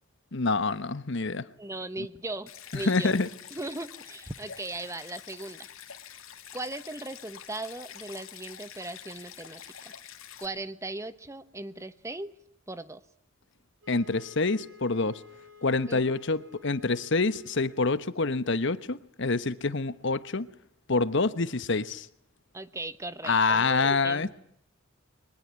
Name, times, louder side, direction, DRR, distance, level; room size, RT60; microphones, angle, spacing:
voice 1, 0.3-1.5 2.7-3.3 13.9-15.2 15.6-20.5 20.9-22.1 23.2-24.3, left 3 dB, 60° left, 1.1 m, -26 dB
voice 2, 1.6-3.1 3.5-5.7 6.5-9.9 10.4-12.3 12.7-13.0 15.9-16.0 22.5-24.3, right 2 dB, 15° right, 1.1 m, -38 dB
Stream, 2.5-10.5, left 9 dB, 80° left, 2.4 m, -47 dB
sound 1, 13.8-18.2, left 5 dB, 65° right, 6.1 m, -53 dB
23.5 x 20.0 x 9.5 m
head